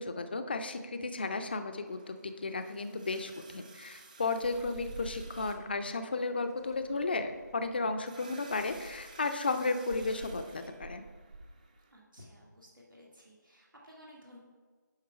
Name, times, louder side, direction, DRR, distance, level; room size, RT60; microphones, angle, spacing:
voice 1, 0.0-11.0, left 3 dB, 30° left, 8 dB, 0.5 m, -34 dB
sound 1, 1.9-11.9, right 3 dB, 25° right, 0.5 m, -56 dB
sound 2, 4.4-5.7 6.6-7.8 8.5-9.2 9.9-11.5, right 2 dB, 55° right, 1.1 m, -48 dB
voice 2, 11.9-14.4, equal, 90° right, -3 dB, 2.0 m, -55 dB
9.5 x 3.6 x 5.5 m, 1.5 s
figure-of-eight pair, 160°, 10 cm